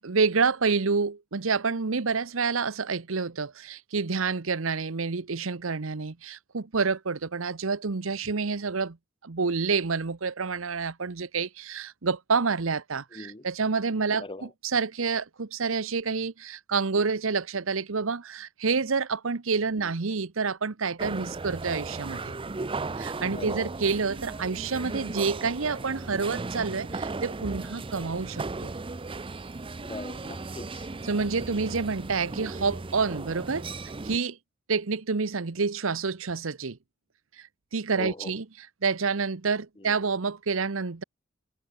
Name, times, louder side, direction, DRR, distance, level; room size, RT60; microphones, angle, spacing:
voice 1, 0.0-9.0 9.2-22.3 23.0-28.7 31.0-33.7 34.0-34.4 34.7-36.8 37.7-38.4 38.8-41.0, right 4 dB, 75° right, 0.9 m, -28 dB
voice 2, 13.1-13.5 14.2-14.5 19.7-19.9 23.3-23.7 29.8-30.9 37.9-38.3 39.8-40.0, left 2 dB, 25° left, 1.5 m, -41 dB
sound 1, 21.0-34.2, right 3 dB, 25° right, 0.6 m, -36 dB
head